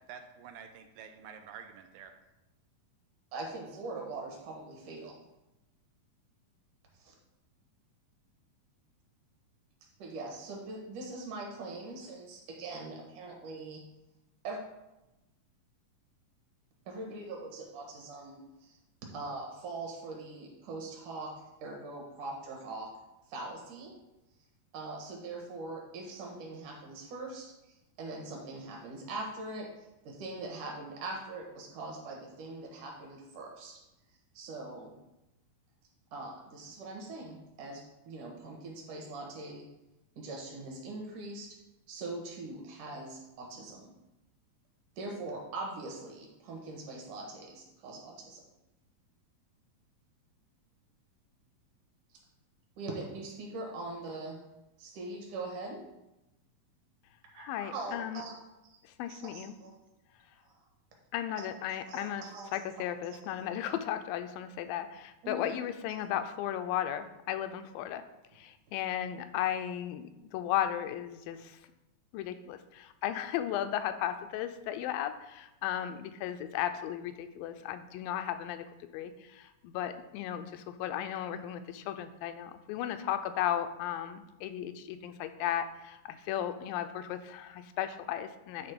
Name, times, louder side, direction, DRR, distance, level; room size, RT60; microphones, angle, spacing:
voice 1, 0.1-2.1, right 7 dB, 80° right, 6 dB, 2.3 m, -48 dB
voice 2, 3.3-5.2 6.9-7.1 10.0-13.8 14.4-14.6 16.9-18.8 19.1-21.3 21.6-22.9 23.3-24.0 24.7-33.8 34.3-34.9 36.1-39.6 40.2-41.6 41.9-43.9 45.0-48.4 52.8-54.4 54.8-55.8 57.3-58.8 59.1-59.7 60.5-60.6 61.4-62.5 63.0-63.3 65.2-65.4, right 2 dB, 65° right, 0 dB, 2.8 m, -42 dB
voice 3, 57.4-58.2 59.0-59.6 61.1-62.2 62.5-68.0 68.4-71.6 72.1-78.7 78.9-88.7, left 11 dB, 85° left, 9 dB, 2.3 m, -35 dB
10.5 x 3.7 x 5.1 m, 0.96 s
omnidirectional pair, 4.1 m